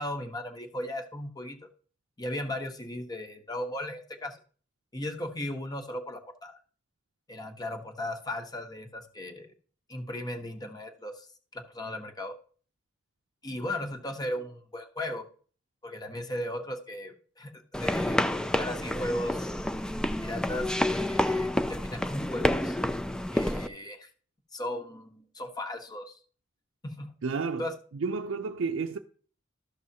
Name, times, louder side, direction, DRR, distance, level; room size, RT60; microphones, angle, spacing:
voice 1, 0.0-1.6 2.2-4.4 4.9-6.6 7.3-9.5 9.9-11.3 11.5-12.4 13.4-15.2 15.8-19.5 20.2-22.8 23.3-24.1 24.5-26.2 26.8-27.1 27.6-27.7, left 1 dB, 20° left, 1.1 m, -36 dB
sound 1, 17.7-23.7, left 1 dB, 5° left, 0.4 m, -29 dB
voice 2, 27.2-27.7 27.9-29.0, right 4 dB, 90° right, 0.5 m, -31 dB
13.5 x 6.3 x 2.8 m
head